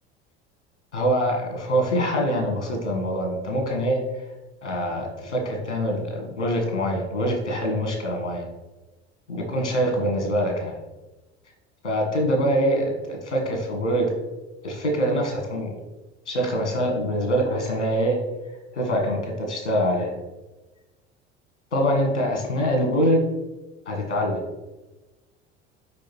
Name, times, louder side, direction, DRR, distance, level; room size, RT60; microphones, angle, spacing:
voice 1, 0.9-4.2 4.6-8.5 9.3-10.7 11.8-14.1 14.6-15.7 16.3-18.2 18.7-20.1 21.7-23.2 23.8-24.4, equal, 90° left, 2 dB, 1.6 m, -24 dB
5.2 x 4.9 x 4.6 m, 1.1 s
figure-of-eight pair, 70°, 34 cm